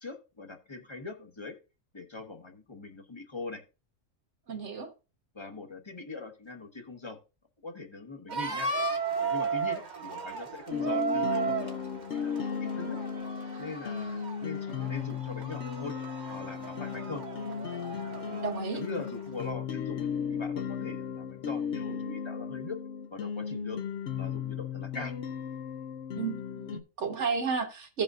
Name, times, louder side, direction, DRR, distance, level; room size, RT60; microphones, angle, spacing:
voice 1, 0.0-1.5 1.9-3.6 5.3-7.2 7.6-8.7 9.2-13.0 13.6-16.0 16.3-17.2 18.3-22.8 23.1-23.8 24.2-25.1, left 3 dB, 20° left, 1.2 m, -42 dB
voice 2, 4.5-4.9 18.4-18.8 26.2-28.0, right 5 dB, 60° right, 1.8 m, -32 dB
sound 1, 8.3-19.5, right 5 dB, 35° right, 1.2 m, -35 dB
sound 2, 10.7-26.8, left 7 dB, 65° left, 0.9 m, -35 dB
16.0 x 5.5 x 2.5 m
omnidirectional pair, 1.4 m